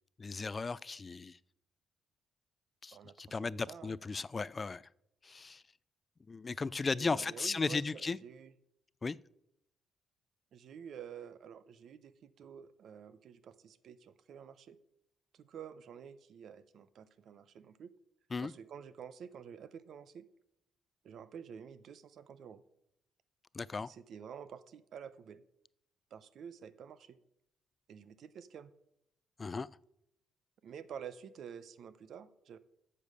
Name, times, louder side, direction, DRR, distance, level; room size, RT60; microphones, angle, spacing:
voice 1, 0.2-1.4 2.8-4.8 5.2-5.6 6.3-8.2 9.0-9.2 18.3-18.5 23.5-23.9 29.4-29.7, left 4 dB, 30° left, 0.3 m, -36 dB
voice 2, 2.9-3.9 6.9-8.5 10.5-14.8 15.3-17.9 18.4-20.3 21.0-22.6 23.8-25.4 26.1-27.2 27.9-28.7 30.6-32.6, right 7 dB, 65° right, 0.7 m, -49 dB
8.6 x 6.7 x 6.6 m
cardioid pair, 90°, 0 cm